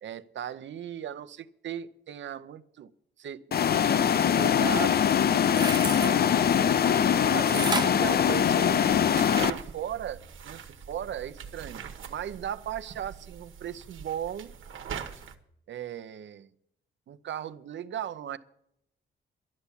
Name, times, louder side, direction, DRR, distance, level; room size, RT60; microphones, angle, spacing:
voice 1, 0.0-2.9 3.2-5.0 5.2-6.2 7.2-9.0 9.3-14.5 15.7-16.5 17.1-18.4, right 10 dB, 70° right, 12 dB, 0.7 m, -37 dB
sound 1, 3.5-9.5, left 8 dB, 50° left, 0.5 m, -23 dB
sound 2, 5.4-6.1 7.5-9.0 9.5-9.6, right 4 dB, 20° right, 0.5 m, -33 dB
sound 3, 8.7-15.4, right 7 dB, 85° right, 1.3 m, -42 dB
12.0 x 7.0 x 9.9 m, 0.75 s
wide cardioid pair, 140°, 20 cm